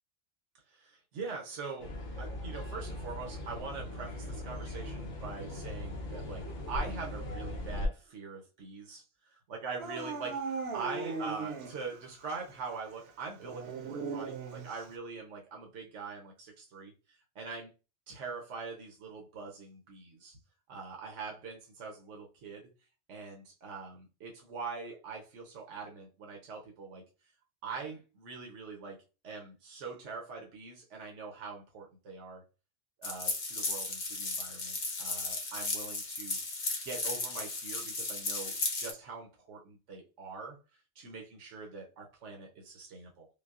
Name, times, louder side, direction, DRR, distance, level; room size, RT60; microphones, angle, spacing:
voice 1, 0.7-1.9 2.2-9.1 9.5-17.7 18.1-20.4 20.7-22.7 23.1-27.0 27.6-29.0 29.2-32.4 33.0-36.4 36.8-40.6 41.0-43.3, right 4 dB, 85° right, 1 dB, 1.1 m, -43 dB
sound 1, 1.8-7.9, left 1 dB, 85° left, 1.2 m, -39 dB
Dog / Siren, 9.8-12.0 12.3-12.4 13.4-14.9, right 4 dB, 65° right, 0.9 m, -38 dB
sound 2, 33.0-38.9, left 3 dB, 45° left, 0.8 m, -35 dB
5.4 x 2.0 x 2.4 m, 0.31 s
omnidirectional pair, 1.2 m